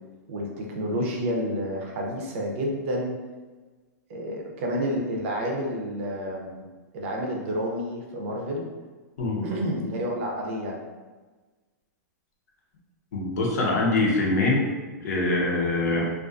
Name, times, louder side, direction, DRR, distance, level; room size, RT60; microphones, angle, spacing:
voice 1, 0.3-3.2 4.1-6.7 6.9-8.7 9.4-10.8 15.9-16.1, equal, 45° right, 0 dB, 0.5 m, -29 dB
voice 2, 13.1-14.7 15.0-16.1, left 2 dB, 70° left, -2 dB, 0.7 m, -24 dB
2.4 x 2.3 x 2.4 m, 1.3 s
hypercardioid pair, 155°, 9 cm